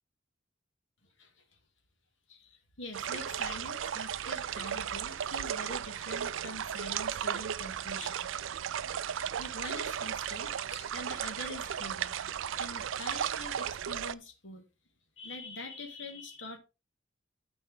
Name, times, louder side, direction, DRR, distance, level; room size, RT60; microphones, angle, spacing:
voice 1, 2.3-8.3 9.4-12.2 12.6-14.6 15.2-16.6, left 2 dB, 75° left, 1.9 m, -45 dB
sound 1, 2.9-14.2, right 9 dB, 80° right, 0.4 m, -35 dB
12.5 x 4.6 x 3.6 m
head